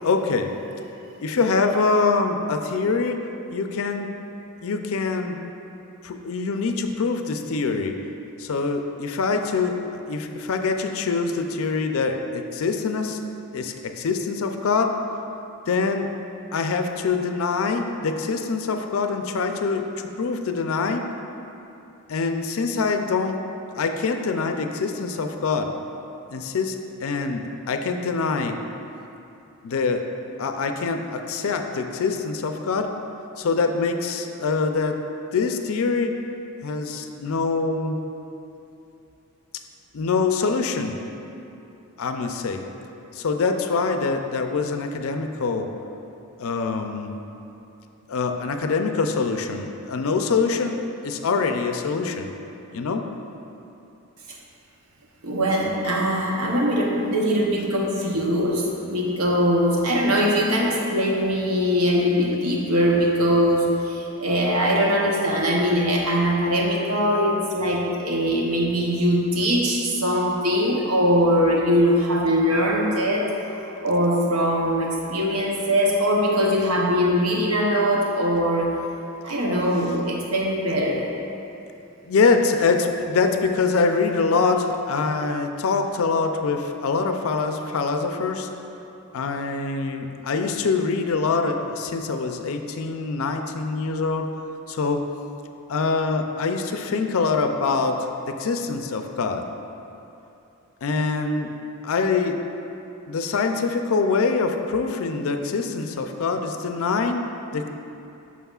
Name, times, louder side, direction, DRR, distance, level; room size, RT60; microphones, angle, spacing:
voice 1, 0.0-0.5 1.2-3.2 3.5-4.1 4.6-5.4 6.0-8.0 8.4-13.2 13.5-14.9 15.7-16.1 16.5-21.0 22.1-23.4 23.8-25.7 26.3-28.6 29.6-30.1 30.4-32.9 33.4-35.0 35.3-36.1 36.6-38.0 39.9-41.0 42.0-42.6 43.1-45.7 46.4-47.1 48.1-50.8 51.0-52.3 52.7-53.0 82.0-88.5 89.1-94.3 94.7-95.0 95.7-99.4 100.8-101.5 101.8-102.4 103.1-107.2 107.5-107.7, left 4 dB, 65° left, 6 dB, 0.4 m, -24 dB
voice 2, 55.2-78.7 79.2-81.1, equal, 70° right, -2 dB, 0.8 m, -21 dB
9.1 x 6.2 x 2.4 m, 2.8 s
head